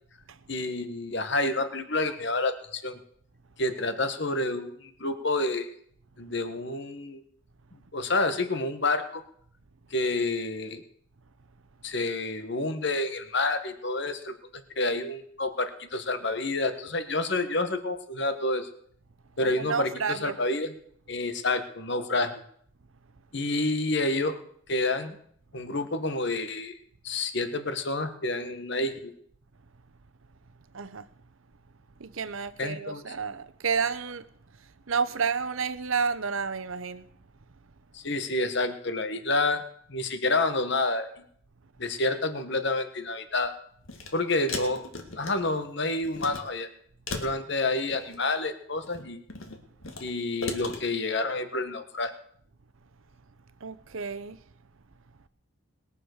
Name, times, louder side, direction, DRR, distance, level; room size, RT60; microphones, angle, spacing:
voice 1, 0.5-3.0 3.6-5.7 6.2-7.2 7.9-9.2 9.9-10.8 11.8-18.7 19.4-20.7 21.1-22.4 23.3-24.4 24.7-25.2 25.5-26.8 27.0-29.1 32.6-33.1 37.9-39.6 39.9-41.2 41.8-43.5 44.1-44.9 45.2-46.7 47.2-49.2 50.0-52.1, left 2 dB, 55° left, 1.3 m, -29 dB
voice 2, 19.4-20.4 30.7-31.1 32.0-34.3 34.6-37.1 53.6-54.4, right 5 dB, 70° right, 0.8 m, -31 dB
sound 1, 43.8-44.1 44.5-45.7 46.0-46.4 47.1-48.2 48.8-50.0 50.4-50.8, left 3 dB, 70° left, 2.0 m, -36 dB
20.5 x 7.1 x 6.5 m
head